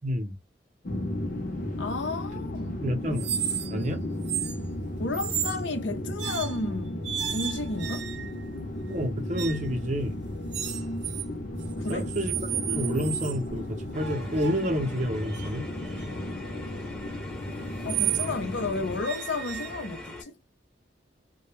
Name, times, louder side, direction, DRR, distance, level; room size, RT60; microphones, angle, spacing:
voice 1, 0.0-0.4 2.8-3.3 3.7-4.0 8.9-10.1 11.9-15.7, equal, 40° right, 0.6 m, -29 dB
sound 1, 0.8-19.0, left 1 dB, 45° left, 0.7 m, -34 dB
voice 2, 1.8-2.8 5.0-8.1 11.8-12.1 17.8-20.3, left 3 dB, 85° left, 0.6 m, -32 dB
sound 2, 3.1-3.9 4.2-4.6 5.1-5.6 6.2-6.7 7.0-8.4 9.3-9.7 10.5-11.3 11.6-13.4 14.0-18.3 19.0-20.2, right 11 dB, 80° right, 0.6 m, -33 dB
sound 3, 13.9-20.2, left 2 dB, 5° left, 0.7 m, -43 dB
2.2 x 2.1 x 3.1 m
head